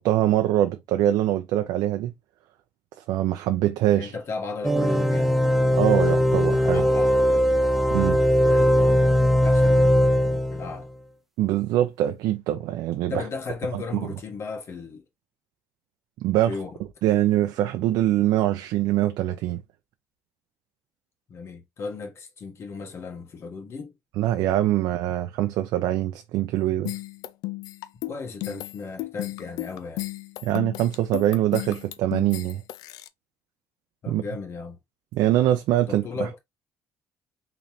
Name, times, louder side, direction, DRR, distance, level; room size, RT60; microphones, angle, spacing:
voice 1, 0.0-2.1 3.1-4.1 5.7-6.8 7.9-8.2 11.4-13.2 13.7-13.8 16.2-16.5 17.0-19.6 24.2-26.9 30.4-32.6 34.1-34.2 35.1-36.4, right 13 dB, 80° right, 0.5 m, -23 dB
voice 2, 3.9-5.3 6.6-7.5 8.4-10.9 13.1-15.0 16.5-16.8 21.3-23.9 28.1-30.1 34.0-34.8 35.9-36.4, left 4 dB, 45° left, 1.4 m, -35 dB
sound 1, 4.6-10.8, equal, 5° right, 0.5 m, -20 dB
sound 2, 26.9-33.1, left 18 dB, 85° left, 0.4 m, -34 dB
3.9 x 3.2 x 2.8 m
cardioid pair, 120°, 6 cm